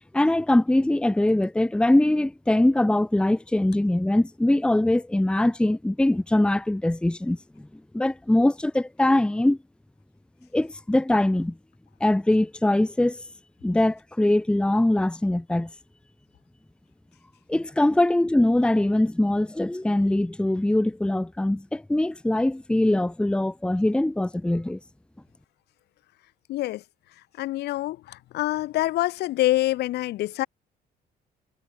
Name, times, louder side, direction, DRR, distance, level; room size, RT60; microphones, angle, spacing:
voice 1, 0.1-7.7 7.9-9.6 10.5-11.5 12.0-13.2 13.6-15.7 17.5-24.8, left 1 dB, 5° left, 1.1 m, -22 dB
voice 2, 26.5-26.8 27.4-30.5, left 16 dB, 75° left, 3.7 m, -26 dB
cardioid pair, 110°, 17 cm